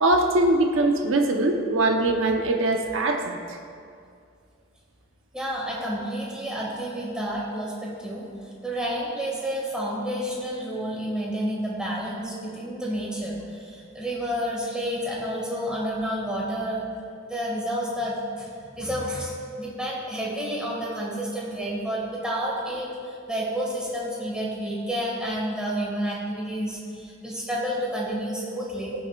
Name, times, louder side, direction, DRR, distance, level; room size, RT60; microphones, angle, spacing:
voice 1, 0.0-3.4, right 2 dB, 75° right, 3 dB, 0.9 m, -22 dB
voice 2, 5.3-8.3 8.6-16.8 17.3-18.5 18.8-22.9 23.3-28.9, equal, 5° right, -5 dB, 2.0 m, -30 dB
16.5 x 7.1 x 2.4 m, 2.3 s
head